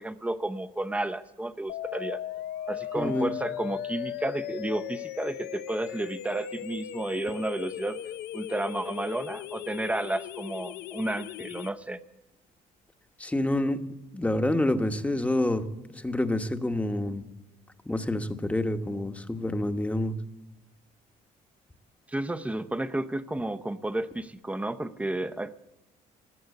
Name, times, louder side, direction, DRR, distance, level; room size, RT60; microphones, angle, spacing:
voice 1, 0.0-2.2 2.7-8.0 8.3-12.0 22.1-25.5, right 1 dB, 10° right, 10 dB, 0.7 m, -32 dB
sound 1, 1.7-11.7, left 12 dB, 75° left, 0.6 m, -38 dB
voice 2, 3.0-3.3 13.2-13.8 14.1-17.2 17.8-20.2, left 1 dB, 10° left, 8 dB, 1.0 m, -28 dB
19.5 x 7.9 x 8.2 m, 1.0 s
cardioid pair, 110°, 17 cm